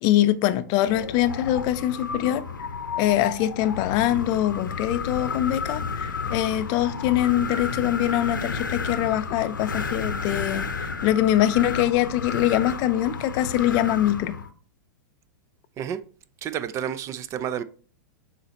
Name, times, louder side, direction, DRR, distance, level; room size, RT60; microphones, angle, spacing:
voice 1, 0.0-2.4 3.0-10.7 11.0-14.4, left 13 dB, 40° left, 0.6 m, -23 dB
Wind, 0.9-14.5, left 5 dB, 90° left, 0.7 m, -32 dB
voice 2, 16.4-17.6, right 9 dB, 30° right, 0.5 m, -30 dB
6.2 x 4.1 x 4.1 m
hypercardioid pair, 115°, 10 cm